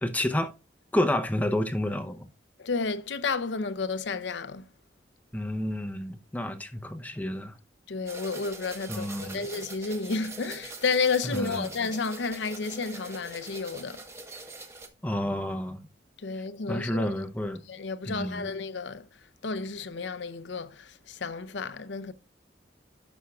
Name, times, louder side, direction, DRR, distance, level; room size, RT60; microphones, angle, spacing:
voice 1, 0.0-0.5 0.9-2.3 5.3-7.5 8.9-9.4 11.2-11.7 15.0-15.9 16.7-17.6 18.1-18.5, left 1 dB, 10° left, 0.7 m, -30 dB
voice 2, 2.6-4.6 7.9-14.0 16.2-17.1 17.7-19.1 19.4-22.1, left 4 dB, 75° left, 0.7 m, -31 dB
sound 1, 8.1-14.9, right 3 dB, 15° right, 1.2 m, -43 dB
11.0 x 6.3 x 2.3 m
head